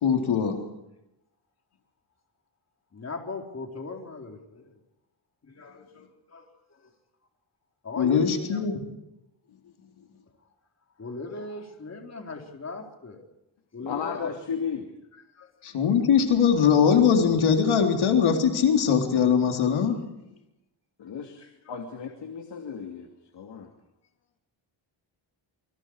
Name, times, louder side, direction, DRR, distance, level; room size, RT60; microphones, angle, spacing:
voice 1, 0.0-0.6 8.0-8.8 15.6-20.0, left 7 dB, 85° left, 3 dB, 3.9 m, -21 dB
voice 2, 2.9-4.8 5.4-6.4 6.8-6.9 7.8-8.7 11.0-13.2 13.7-14.4 15.1-15.5 15.8-15.9 21.4-21.8, left 3 dB, 35° left, 2 dB, 4.4 m, -38 dB
voice 3, 13.8-14.9 21.0-23.1 23.3-23.7, left 6 dB, 65° left, 4 dB, 2.8 m, -34 dB
27.5 x 25.5 x 4.9 m, 0.88 s
wide cardioid pair, 140°, 47 cm